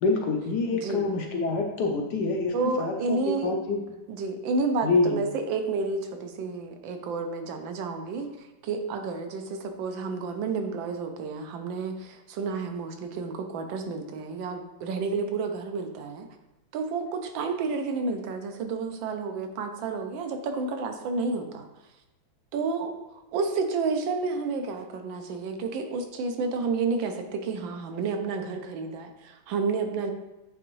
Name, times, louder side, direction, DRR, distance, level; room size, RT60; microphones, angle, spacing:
voice 1, 0.0-3.8 4.8-5.2, left 3 dB, 70° left, 2 dB, 1.1 m, -26 dB
voice 2, 0.7-1.1 2.5-3.5 4.1-16.3 16.7-21.7 22.5-30.1, right 4 dB, 75° right, 6 dB, 1.3 m, -30 dB
8.9 x 3.4 x 3.1 m, 0.97 s
omnidirectional pair, 2.2 m